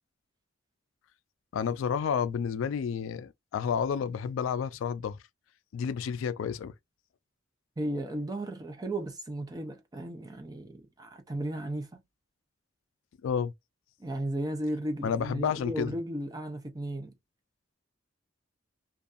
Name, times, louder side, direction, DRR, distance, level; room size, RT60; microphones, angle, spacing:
voice 1, 1.5-5.2 5.7-6.7 13.2-13.5 15.0-15.9, left 7 dB, 75° left, 0.3 m, -30 dB
voice 2, 7.8-12.0 14.0-17.1, right 1 dB, 20° right, 0.5 m, -35 dB
2.6 x 2.3 x 2.4 m
head